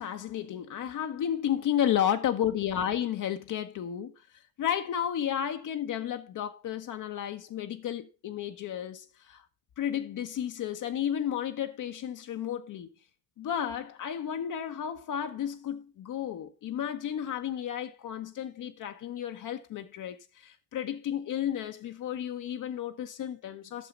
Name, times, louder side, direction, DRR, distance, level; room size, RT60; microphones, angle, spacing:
voice 1, 0.0-4.1 4.6-9.4 9.8-12.9 13.4-23.9, left 10 dB, 40° left, 1.0 m, -32 dB
9.6 x 6.8 x 5.1 m
figure-of-eight pair, 60°, 47 cm